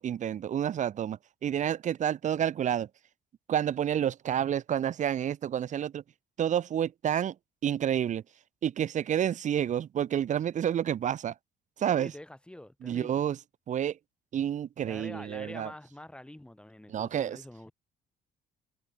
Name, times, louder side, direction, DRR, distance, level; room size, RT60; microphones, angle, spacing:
voice 1, 0.0-2.9 3.5-6.0 6.4-7.3 7.6-8.2 8.6-11.3 11.8-12.1 12.8-13.4 13.7-14.0 14.3-15.7 16.9-17.4, right 9 dB, 45° right, 1.0 m, -29 dB
voice 2, 12.0-13.2 14.8-17.7, left 1 dB, 5° left, 2.3 m, -46 dB
cardioid pair, 110°, 17 cm